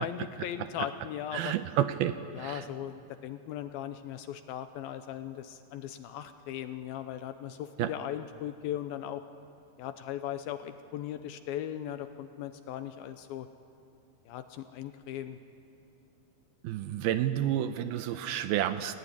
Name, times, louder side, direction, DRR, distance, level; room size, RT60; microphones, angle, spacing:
voice 1, 0.0-1.6 2.3-9.2 9.8-13.5 14.3-15.4, left 11 dB, 80° left, 10 dB, 2.4 m, -38 dB
voice 2, 1.3-2.6 7.8-7.9 16.6-19.0, right 11 dB, 80° right, 11 dB, 2.4 m, -30 dB
28.0 x 18.0 x 9.8 m, 2.6 s
omnidirectional pair, 4.8 m